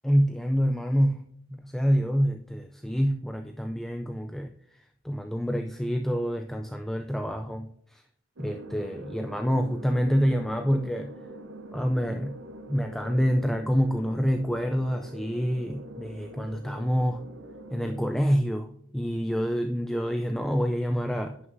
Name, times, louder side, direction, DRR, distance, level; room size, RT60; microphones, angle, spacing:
voice 1, 0.0-4.5 5.0-8.0 8.4-11.1 11.7-12.4 12.7-17.2 17.7-21.4, equal, ahead, 5 dB, 0.3 m, -27 dB
sound 1, 8.4-18.1, right 1 dB, 80° right, 0.8 m, -44 dB
10.5 x 6.4 x 2.6 m, 0.69 s
head